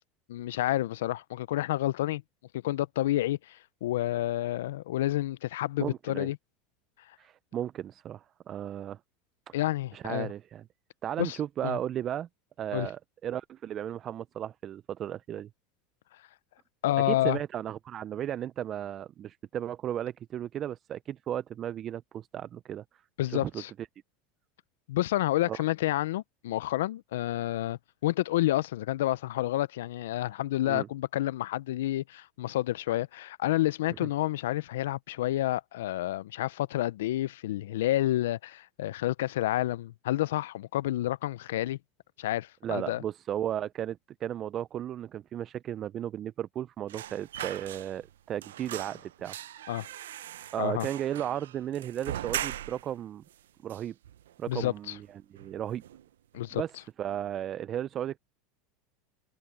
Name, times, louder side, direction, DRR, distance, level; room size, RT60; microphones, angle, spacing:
voice 1, 0.3-2.2 2.6-6.4 9.5-10.3 11.2-11.4 11.6-11.8 12.7-12.9 16.8-17.4 23.2-23.7 24.9-41.8 42.2-43.0 49.7-49.9 50.6-50.9 54.5-55.0 56.3-56.6, left 15 dB, 80° left, 0.5 m, -29 dB
voice 2, 5.8-6.3 7.2-9.0 9.5-9.6 9.9-10.6 11.0-12.3 12.6-15.5 17.0-22.8 23.3-23.6 25.5-25.6 30.6-30.9 42.6-49.7 50.5-53.2 53.6-53.9 54.4-55.8 56.5-56.7 57.0-58.2, right 10 dB, 40° right, 0.5 m, -35 dB
sound 1, 46.9-48.1 48.4-52.9 53.3-53.4 53.7-54.5 54.8-55.0 55.4-56.0 56.3-56.5, right 12 dB, 85° right, 0.6 m, -40 dB
hypercardioid pair, 100°, 0 cm